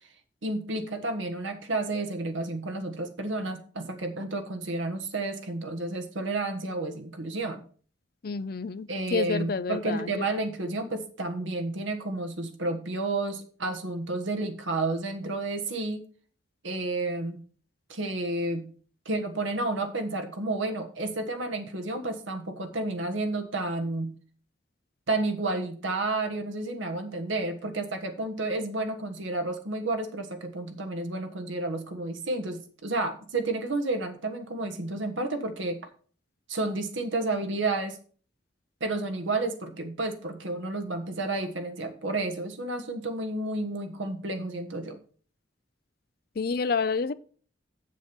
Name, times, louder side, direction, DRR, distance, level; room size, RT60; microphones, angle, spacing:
voice 1, 0.4-7.6 8.9-16.0 16.6-17.4 17.9-18.7 19.0-24.1 25.1-35.8 36.5-38.0 38.8-45.0, right 2 dB, 80° right, 1.4 m, -31 dB
voice 2, 8.2-10.2 46.4-47.1, left 4 dB, 50° left, 0.5 m, -29 dB
7.5 x 7.3 x 5.3 m
head